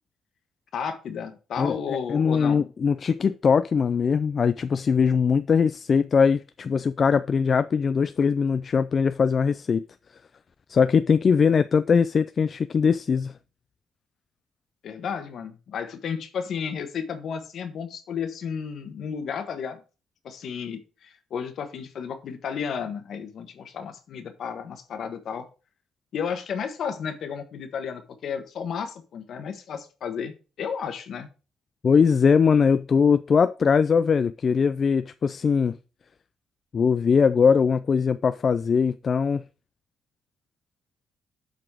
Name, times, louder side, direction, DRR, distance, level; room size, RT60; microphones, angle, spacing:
voice 1, 0.7-2.6 14.8-19.8 20.2-25.4 26.1-31.3, left 7 dB, 65° left, 1.3 m, -33 dB
voice 2, 1.6-9.8 10.7-13.3 31.8-35.8 36.7-39.4, left 6 dB, 45° left, 0.3 m, -21 dB
7.7 x 4.1 x 4.8 m
cardioid pair, 90°, 0 cm